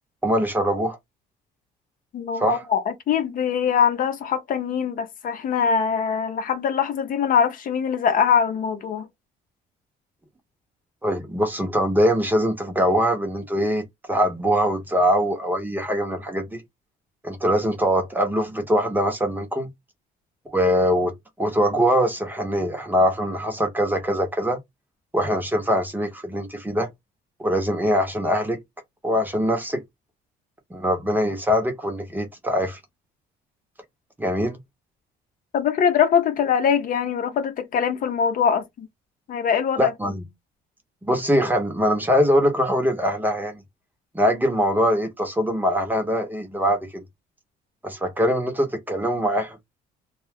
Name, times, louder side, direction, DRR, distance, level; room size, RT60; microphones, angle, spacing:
voice 1, 0.2-1.0 2.4-2.6 11.0-16.6 17.2-19.7 20.5-24.6 25.1-26.9 27.4-28.6 29.0-29.8 30.7-32.8 34.2-34.6 39.8-40.3 41.0-43.6 44.1-47.0 47.8-49.6, equal, 10° right, 0.8 m, -22 dB
voice 2, 2.1-9.1 35.5-38.9 39.3-39.9, left 7 dB, 55° left, 0.8 m, -22 dB
2.3 x 2.1 x 3.4 m
cardioid pair, 110°, 17 cm